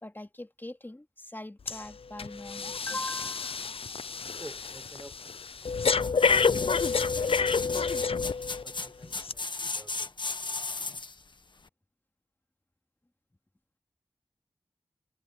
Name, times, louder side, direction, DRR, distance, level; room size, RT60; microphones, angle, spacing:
voice 1, 0.0-3.6 10.7-10.9, left 1 dB, 20° left, 2.8 m, -41 dB
Breathing, 1.7-1.9 2.2-8.6 9.2-9.3, left 5 dB, 75° left, 0.6 m, -29 dB
voice 2, 4.4-7.9 8.6-10.4, right 1 dB, 20° right, 5.3 m, -52 dB
sound 1, 6.0-11.2 11.7-11.8, left 3 dB, 55° left, 1.4 m, -36 dB
wide cardioid pair, 75°, 10 cm